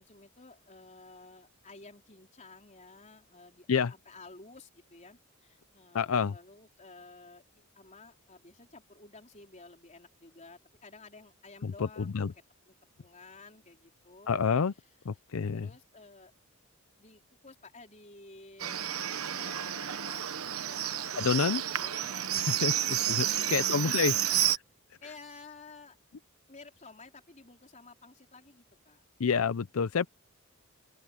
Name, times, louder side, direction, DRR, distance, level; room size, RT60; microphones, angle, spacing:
voice 1, 0.0-12.1 12.7-14.3 15.5-16.3 17.0-18.8 19.2-20.3 20.6-23.1 23.3-24.4 25.0-26.0 26.5-29.0, left 3 dB, 35° left, 4.2 m, -53 dB
voice 2, 5.9-6.3 11.6-12.3 14.3-14.7 15.1-15.7 21.2-21.6 22.4-22.7 23.1-24.4 29.2-30.1, left 6 dB, 75° left, 0.5 m, -28 dB
Livestock farm animals working animals, 18.6-24.6, right 11 dB, 90° right, 1.1 m, -30 dB
open air
head